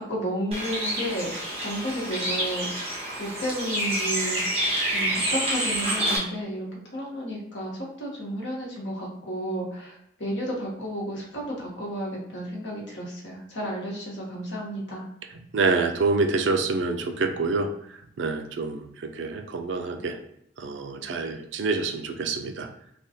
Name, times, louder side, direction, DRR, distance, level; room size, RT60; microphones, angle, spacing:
voice 1, 0.1-1.3 1.6-2.7 3.2-4.4 4.9-15.0, equal, 75° left, -3 dB, 1.1 m, -32 dB
Bird, 0.5-6.2, right 1 dB, 30° right, 0.9 m, -28 dB
voice 2, 15.5-17.7 18.2-18.8 19.2-20.2 20.6-22.7, right 3 dB, 80° right, 5 dB, 0.4 m, -26 dB
3.4 x 2.3 x 2.7 m, 0.75 s
head